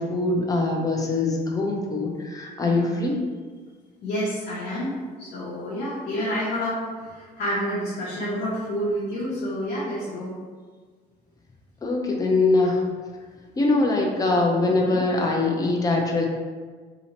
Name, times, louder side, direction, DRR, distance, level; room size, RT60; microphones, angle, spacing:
voice 1, 0.0-3.2 11.8-12.8 13.6-16.2, left 2 dB, 20° left, 0 dB, 0.6 m, -23 dB
voice 2, 2.6-3.1 4.0-10.3 14.6-15.0, equal, 65° left, -9 dB, 1.1 m, -29 dB
2.8 x 2.7 x 4.3 m, 1.5 s
cardioid pair, 110°, 17 cm